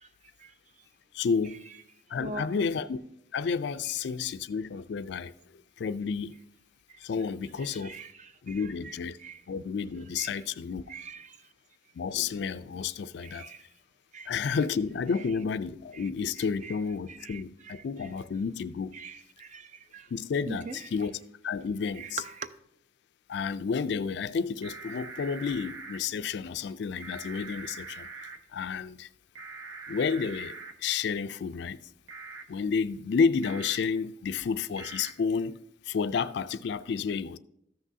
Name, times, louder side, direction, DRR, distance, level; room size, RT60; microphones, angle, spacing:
voice 1, 1.1-1.6 2.1-3.0 3.3-5.3 5.8-6.4 7.0-8.0 8.4-9.2 9.5-10.8 11.9-13.5 14.3-19.0 20.1-21.1 21.4-22.2 23.3-29.1 29.9-31.8 32.5-35.6 35.8-37.4, left 5 dB, 60° left, 0.3 m, -31 dB
voice 2, 2.1-2.5 6.9-7.0 7.8-8.9 9.2-9.4 10.2-10.3 10.9-11.4 13.2-13.6 14.1-14.6 15.9-16.1 16.6-16.8 17.1-17.7 18.9-20.1 20.5-20.9 22.0-22.5, right 4 dB, 40° right, 0.5 m, -42 dB
sound 1, 24.6-26.0 27.0-28.4 29.4-30.7 32.1-32.4 33.4-33.8 34.8-35.1, right 4 dB, 70° right, 1.0 m, -43 dB
14.0 x 6.1 x 2.7 m
head